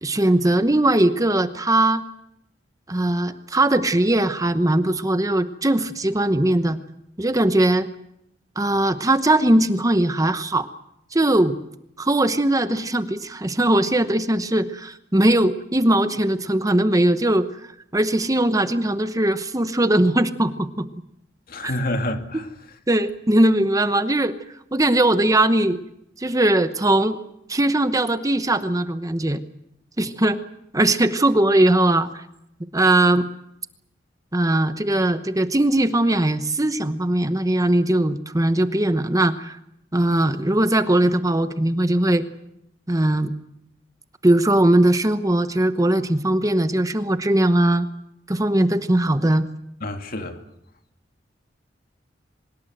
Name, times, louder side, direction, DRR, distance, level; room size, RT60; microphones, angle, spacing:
voice 1, 0.0-2.0 2.9-6.8 7.2-7.9 8.6-10.7 11.1-11.6 12.0-17.5 17.9-20.9 21.6-21.7 22.9-24.4 24.7-25.8 26.2-27.2 27.5-29.4 30.0-30.4 30.7-32.2 32.7-33.3 34.3-39.6 39.9-42.2 42.9-43.3 44.2-47.9 48.3-49.5, right 1 dB, 20° right, 1.0 m, -20 dB
voice 2, 21.5-22.5 49.8-50.4, left 1 dB, 55° left, 2.4 m, -28 dB
24.5 x 21.5 x 7.8 m
head